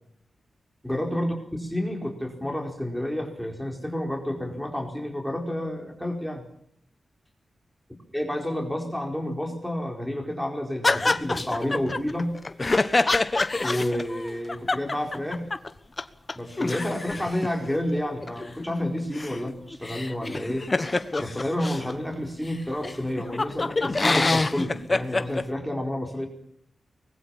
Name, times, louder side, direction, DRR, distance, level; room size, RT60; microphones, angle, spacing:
voice 1, 0.8-1.3 1.7-6.5 8.1-12.3 13.6-15.4 16.3-20.7 21.2-26.3, left 1 dB, ahead, 2 dB, 4.6 m, -30 dB
sound 1, 10.8-15.7 16.0-16.1 16.3-21.9 22.5-22.6 22.8-25.4, left 3 dB, 25° left, 1.2 m, -26 dB
24.0 x 20.5 x 7.1 m, 0.66 s
wide cardioid pair, 110°, 0 cm